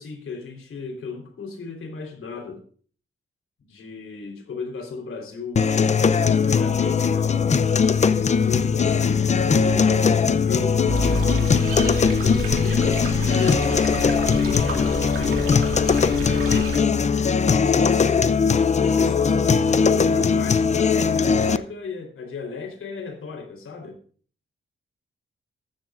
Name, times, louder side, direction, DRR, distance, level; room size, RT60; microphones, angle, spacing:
voice 1, 0.0-2.6 3.6-7.3 8.0-10.9 12.2-17.0 17.7-18.4 18.8-24.0, left 5 dB, 80° left, 4 dB, 3.9 m, -34 dB
sound 1, 5.6-21.6, left 6 dB, 35° left, 0.5 m, -20 dB
sound 2, 6.7-11.7, equal, 15° left, 5.1 m, -40 dB
sound 3, 10.9-16.8, right 3 dB, 80° right, 2.5 m, -30 dB
14.5 x 13.0 x 2.5 m, 0.43 s
wide cardioid pair, 175°, 21 cm